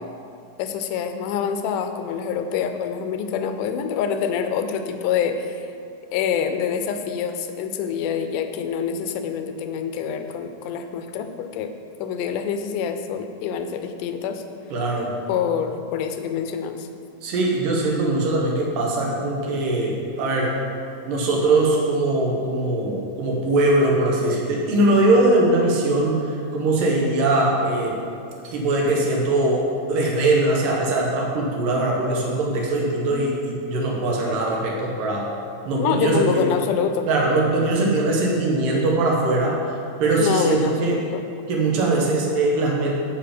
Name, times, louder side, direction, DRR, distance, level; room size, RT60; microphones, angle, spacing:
voice 1, 0.6-5.7 6.1-11.7 12.0-14.4 15.3-16.9 35.8-37.1 40.2-41.2, left 7 dB, 80° left, 7 dB, 2.2 m, -26 dB
voice 2, 14.7-15.1 17.2-20.6 21.1-28.0 28.4-35.3 35.7-36.5 37.1-41.1 41.5-42.9, right 2 dB, 85° right, -1 dB, 3.0 m, -21 dB
14.5 x 5.2 x 5.1 m, 2.4 s
omnidirectional pair, 3.8 m